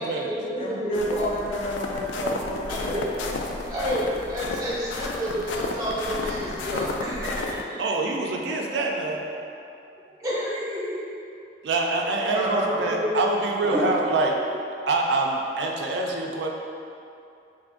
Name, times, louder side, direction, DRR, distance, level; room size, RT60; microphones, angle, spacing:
voice 1, 0.0-1.3 2.7-3.1 3.7-7.8 10.1-11.0 12.0-13.1 13.6-13.8, equal, 20° right, -8 dB, 0.5 m, -29 dB
voice 2, 0.6-3.7, equal, 30° left, -4 dB, 0.5 m, -31 dB
sound 1, 0.9-7.6, left 3 dB, 90° left, 0.3 m, -32 dB
voice 3, 7.8-9.2 11.6-14.3 14.9-16.5, right 2 dB, 75° right, 0 dB, 0.4 m, -25 dB
3.7 x 2.5 x 3.5 m, 2.6 s
head